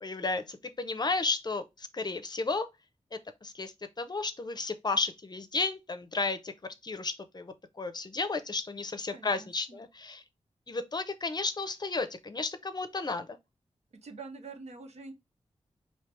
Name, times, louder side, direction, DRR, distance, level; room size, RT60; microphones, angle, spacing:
voice 1, 0.0-2.7 3.1-6.5 6.8-10.2 10.7-13.4, left 3 dB, 40° left, 0.6 m, -33 dB
voice 2, 9.1-9.8 14.0-15.1, right 4 dB, 80° right, 0.8 m, -46 dB
3.3 x 2.8 x 4.4 m
wide cardioid pair, 80°, 11 cm